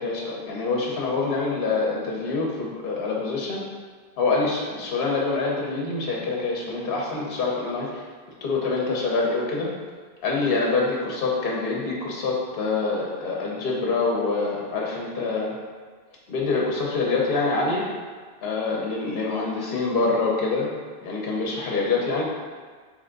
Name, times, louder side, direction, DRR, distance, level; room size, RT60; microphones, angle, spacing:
voice 1, 0.0-3.6 4.2-8.0 8.4-9.7 10.2-15.5 16.3-17.8 18.4-20.7 21.0-22.2, left 3 dB, 65° left, -3 dB, 0.9 m, -25 dB
3.3 x 3.2 x 3.8 m, 1.5 s
omnidirectional pair, 1.1 m